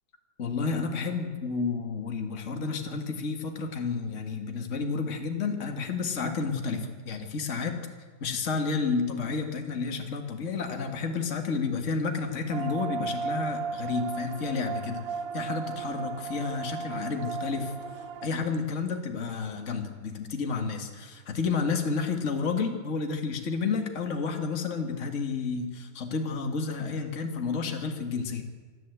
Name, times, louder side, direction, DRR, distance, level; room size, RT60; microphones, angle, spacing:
voice 1, 0.4-7.7 8.2-15.0 15.3-17.7 18.2-28.4, left 4 dB, 35° left, 4 dB, 2.1 m, -31 dB
sound 1, 12.5-18.3, right 5 dB, 60° right, 0.9 m, -35 dB
26.0 x 12.5 x 8.2 m, 1.4 s
omnidirectional pair, 2.3 m